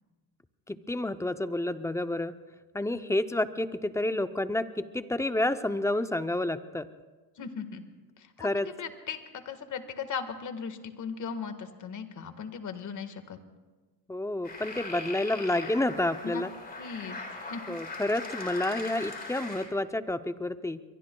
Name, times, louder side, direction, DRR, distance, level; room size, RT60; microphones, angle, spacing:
voice 1, 0.7-2.3 2.7-6.9 8.4-8.7 14.1-16.5 17.7-20.8, left 1 dB, 10° left, 11 dB, 0.5 m, -29 dB
voice 2, 7.4-7.8 8.2-9.2 9.4-13.4 16.2-16.4 16.8-17.6, left 6 dB, 50° left, 8 dB, 1.6 m, -38 dB
sound 1, 14.4-19.6, left 3 dB, 25° left, 4.2 m, -40 dB
23.5 x 23.0 x 2.3 m, 1.3 s
cardioid pair, 110°, 38 cm